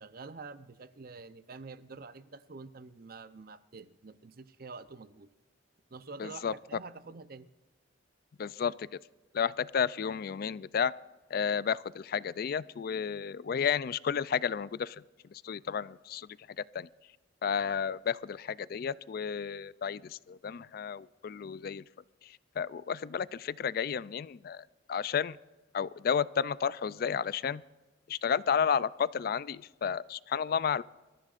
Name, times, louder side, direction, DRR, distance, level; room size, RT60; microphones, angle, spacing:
voice 1, 0.0-5.3 5.9-7.5, right 4 dB, 50° right, 13 dB, 0.7 m, -47 dB
voice 2, 6.2-6.5 8.4-9.0 9.3-10.9 11.3-15.0 15.3-16.9 17.4-21.8 22.2-25.4 25.7-27.6 28.1-30.8, left 7 dB, 50° left, 19 dB, 0.3 m, -32 dB
25.5 x 14.0 x 2.5 m, 1.2 s
head